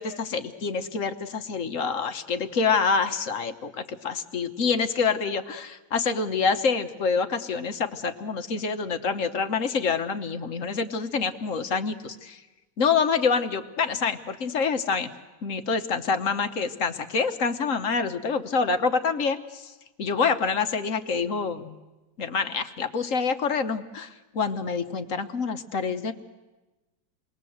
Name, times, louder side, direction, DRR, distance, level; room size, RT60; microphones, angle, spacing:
voice 1, 0.0-12.4 12.8-15.1 15.4-19.7 20.0-21.8 22.2-26.1, left 5 dB, 50° left, 8 dB, 1.2 m, -26 dB
28.5 x 21.0 x 7.8 m, 1.1 s
omnidirectional pair, 2.0 m